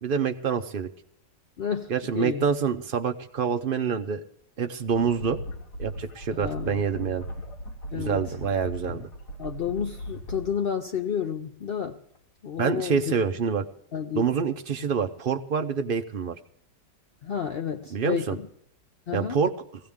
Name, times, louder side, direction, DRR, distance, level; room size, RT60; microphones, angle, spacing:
voice 1, 0.0-0.9 1.9-4.2 4.6-5.4 5.8-7.2 7.9-9.1 12.6-13.7 14.1-16.3 17.9-18.4 19.1-19.5, right 6 dB, 65° right, 0.5 m, -26 dB
voice 2, 1.6-2.4 6.3-6.8 7.9-8.2 9.4-12.0 12.4-13.0 13.9-14.3 17.2-18.4 19.1-19.4, left 8 dB, 90° left, 0.5 m, -31 dB
sound 1, 4.9-10.4, equal, 65° left, 2.6 m, -38 dB
20.5 x 16.0 x 3.6 m
omnidirectional pair, 1.9 m